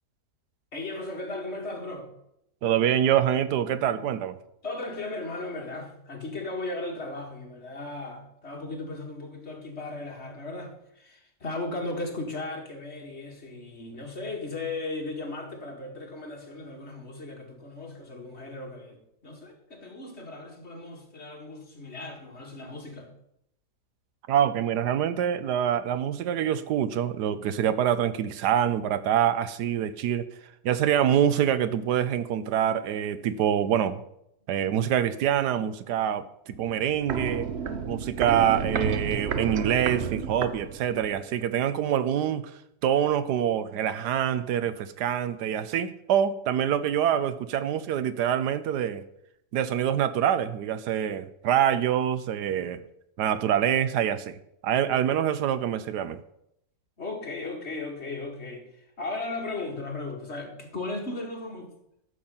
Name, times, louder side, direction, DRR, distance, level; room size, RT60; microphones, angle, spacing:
voice 1, 0.7-2.1 4.6-23.1 57.0-61.7, left 2 dB, 40° left, 1 dB, 2.3 m, -36 dB
voice 2, 2.6-4.4 24.3-30.3 30.6-34.0 34.5-37.5 37.9-42.4 42.8-49.0 49.5-52.8 53.2-54.4 54.6-56.2, right 9 dB, 85° right, 13 dB, 1.3 m, -25 dB
Walk footsteps, 36.5-41.2 41.5-41.6, right 6 dB, 55° right, 0.8 m, -31 dB
13.0 x 7.2 x 5.6 m, 0.78 s
omnidirectional pair, 1.7 m